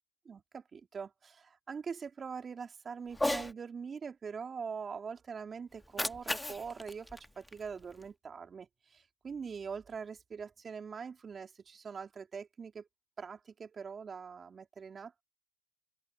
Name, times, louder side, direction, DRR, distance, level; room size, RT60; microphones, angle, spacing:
voice 1, 0.2-12.9 13.2-15.2, right 6 dB, 30° right, 3.2 m, -43 dB
Cat, 3.1-3.5 5.7-8.1, left 1 dB, 5° left, 2.1 m, -36 dB
open air
hypercardioid pair, 85°, 0 cm